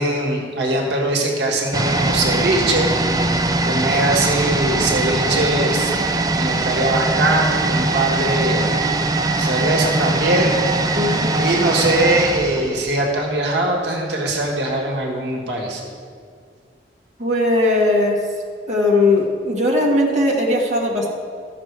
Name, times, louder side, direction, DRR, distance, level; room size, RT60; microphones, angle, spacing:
voice 1, 0.0-2.9 3.6-5.9 6.4-8.6 9.4-10.5 11.4-15.8, right 1 dB, 70° right, -1 dB, 1.5 m, -21 dB
sound 1, 1.7-13.5 13.7-13.8, right 2 dB, 20° right, 0.4 m, -21 dB
voice 2, 10.9-11.3 17.2-18.3 18.7-21.1, left 2 dB, 40° right, -3 dB, 1.4 m, -18 dB
13.5 x 6.1 x 4.7 m, 2.1 s
head